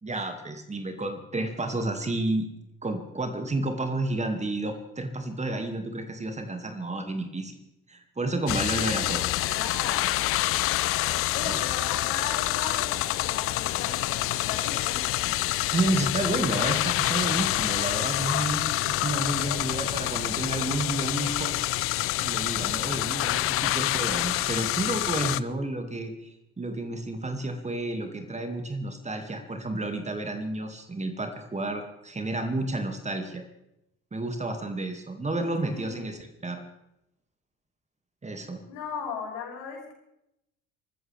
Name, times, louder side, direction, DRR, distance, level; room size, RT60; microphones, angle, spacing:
voice 1, 0.0-2.5 2.8-7.5 7.9-9.3 11.5-11.6 15.7-21.5 22.2-33.4 34.1-36.6 38.2-38.6, right 2 dB, 15° right, 5 dB, 2.2 m, -31 dB
sound 1, 8.5-25.4, left 16 dB, 35° left, 0.5 m, -27 dB
voice 2, 9.3-10.1 11.3-15.4 35.7-36.1 38.7-39.9, left 6 dB, 60° left, -3 dB, 6.6 m, -38 dB
25.5 x 15.0 x 3.5 m, 0.84 s
figure-of-eight pair, 55°, 40 cm